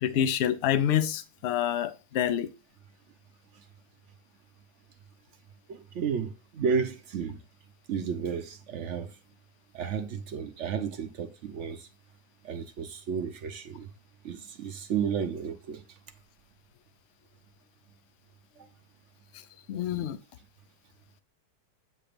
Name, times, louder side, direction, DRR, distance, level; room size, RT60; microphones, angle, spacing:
voice 1, 0.0-2.5 19.7-20.2, left 10 dB, 90° left, 0.5 m, -27 dB
voice 2, 5.7-7.4 7.9-9.1 9.7-11.9 12.4-13.9 14.2-15.8, right 6 dB, 60° right, 0.8 m, -32 dB
8.6 x 2.9 x 5.1 m
omnidirectional pair, 1.8 m